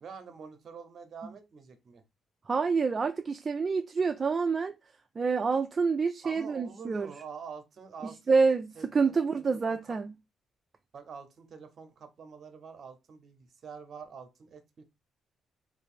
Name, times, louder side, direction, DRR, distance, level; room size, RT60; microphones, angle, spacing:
voice 1, 0.0-2.0 6.2-8.4 8.7-10.0 10.9-14.8, right 6 dB, 55° right, 0.8 m, -46 dB
voice 2, 2.5-4.7 5.2-7.1 8.3-10.1, right 4 dB, 35° right, 0.3 m, -27 dB
3.0 x 2.5 x 4.3 m
cardioid pair, 90°, 0 cm